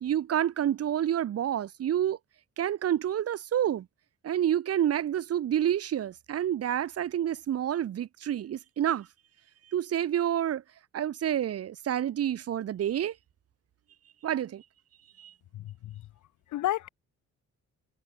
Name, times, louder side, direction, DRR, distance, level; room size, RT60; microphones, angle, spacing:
voice 1, 0.0-2.2 2.6-3.9 4.2-9.1 9.7-10.6 10.9-13.1 14.2-14.6 15.2-15.3, right 10 dB, 55° right, 0.9 m, -28 dB
voice 2, 15.5-16.0 16.5-16.9, left 14 dB, 75° left, 1.2 m, -31 dB
cardioid pair, 90°, 30 cm